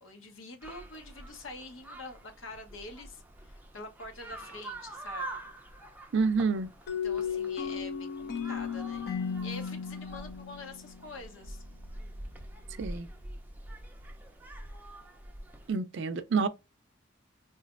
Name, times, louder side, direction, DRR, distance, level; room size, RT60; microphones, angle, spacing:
voice 1, 0.0-5.4 7.0-9.0 9.4-11.6, left 2 dB, 90° left, 1.0 m, -46 dB
sound 1, 0.6-15.7, right 1 dB, 10° right, 0.5 m, -46 dB
voice 2, 6.1-6.7 12.8-13.1 15.7-16.5, right 4 dB, 65° right, 0.4 m, -28 dB
sound 2, 6.9-11.6, left 7 dB, 55° left, 0.8 m, -35 dB
4.0 x 2.4 x 2.4 m
head